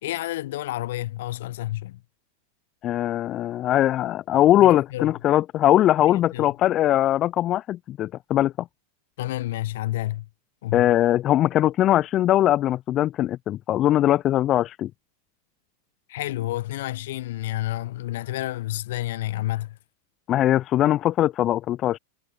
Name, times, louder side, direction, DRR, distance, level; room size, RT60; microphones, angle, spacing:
voice 1, 0.0-2.0 4.6-5.1 6.1-6.4 9.2-10.3 10.6-10.8 16.1-19.8, left 15 dB, 55° left, 0.9 m, -30 dB
voice 2, 2.8-8.5 10.7-14.9 20.3-22.0, left 13 dB, 30° left, 0.3 m, -21 dB
figure-of-eight pair, 90°, 0 cm